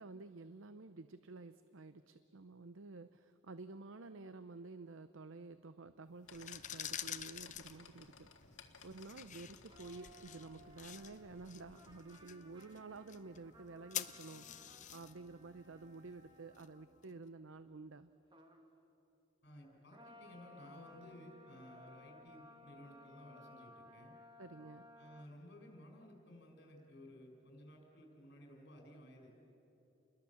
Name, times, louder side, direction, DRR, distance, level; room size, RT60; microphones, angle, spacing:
voice 1, 0.0-8.3 8.8-14.5 14.9-18.1 24.4-24.9, right 3 dB, 75° right, 12 dB, 0.7 m, -51 dB
sound 1, 6.2-12.0, left 4 dB, 80° left, 2.0 m, -60 dB
sound 2, 6.2-17.1, left 10 dB, 35° left, 0.7 m, -49 dB
sound 3, 9.7-17.2 18.3-18.7 19.9-25.2, left 1 dB, 25° right, 1.8 m, -60 dB
voice 2, 19.4-24.2 25.0-29.4, left 1 dB, 55° left, 2 dB, 5.5 m, -56 dB
29.5 x 21.5 x 7.1 m, 2.9 s
head